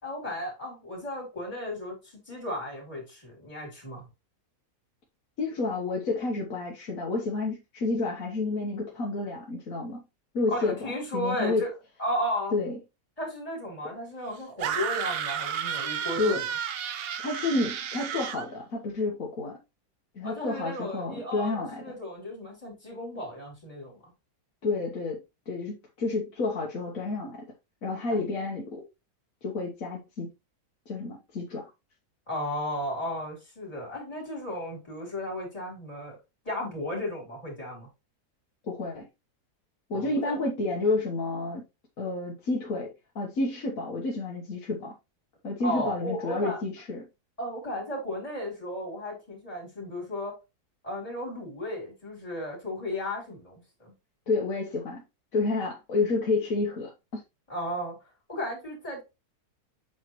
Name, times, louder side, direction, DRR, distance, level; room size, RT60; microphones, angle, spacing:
voice 1, 0.0-4.1 10.5-11.7 12.0-12.6 13.2-16.5 20.2-24.1 28.1-28.2 32.3-36.2 36.4-37.9 39.9-40.4 45.6-46.6 47.4-50.3 50.8-53.9 57.5-58.0 58.3-59.0, left 1 dB, 20° left, 3.9 m, -34 dB
voice 2, 5.4-10.0 10.3-11.6 12.5-12.8 16.2-16.4 17.2-19.6 20.1-21.8 24.6-25.2 25.5-27.4 27.8-28.8 29.4-30.3 30.9-31.7 38.6-39.0 39.9-41.6 42.0-42.9 43.1-44.9 45.4-47.0 54.3-55.0 55.3-57.2, left 3 dB, 60° left, 1.7 m, -30 dB
sound 1, 14.6-18.5, right 8 dB, 70° right, 0.6 m, -32 dB
8.1 x 4.5 x 3.1 m
omnidirectional pair, 1.7 m